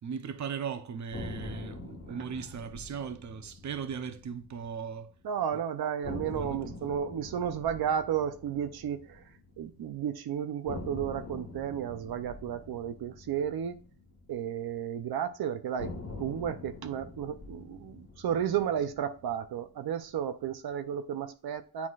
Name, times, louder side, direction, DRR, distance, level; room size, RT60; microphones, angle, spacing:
voice 1, 0.0-5.1 6.3-6.9, right 6 dB, 50° right, 0.8 m, -38 dB
sound 1, 1.1-5.2 5.5-5.6 6.0-10.1 10.7-15.0 15.8-20.1, left 3 dB, 40° left, 1.5 m, -45 dB
voice 2, 5.2-9.2 9.6-13.8 14.3-21.9, right 9 dB, 85° right, 0.7 m, -33 dB
9.5 x 4.2 x 2.4 m
wide cardioid pair, 130°, 37 cm